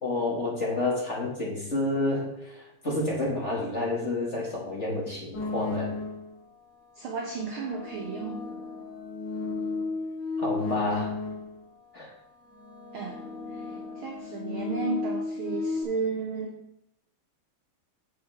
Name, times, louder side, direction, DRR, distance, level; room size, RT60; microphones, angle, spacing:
voice 1, 0.0-5.9 10.4-11.1 11.9-12.1, left 2 dB, 25° left, -4 dB, 2.0 m, -29 dB
sound 1, 5.3-6.4 7.2-11.7 12.4-15.8, left 3 dB, 55° left, 3.5 m, -34 dB
voice 2, 7.0-8.4 12.9-13.7 14.0-16.6, right 4 dB, 65° right, 1 dB, 1.3 m, -33 dB
9.8 x 7.8 x 3.5 m, 0.81 s
omnidirectional pair, 3.7 m